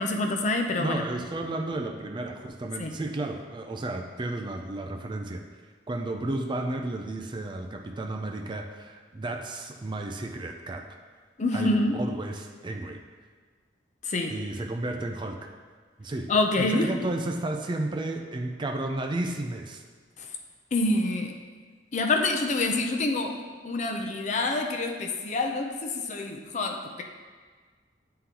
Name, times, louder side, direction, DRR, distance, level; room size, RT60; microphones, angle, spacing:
voice 1, 0.0-1.0 2.8-3.0 11.4-12.0 14.0-14.3 16.3-16.9 20.2-20.3 20.7-21.3 21.9-27.0, left 2 dB, 40° left, 3 dB, 0.5 m, -27 dB
voice 2, 0.8-5.4 5.9-10.9 11.5-13.0 14.3-15.5 16.0-16.3 16.6-19.8, right 2 dB, 25° right, 4 dB, 0.4 m, -33 dB
9.6 x 3.8 x 2.9 m, 1.5 s
head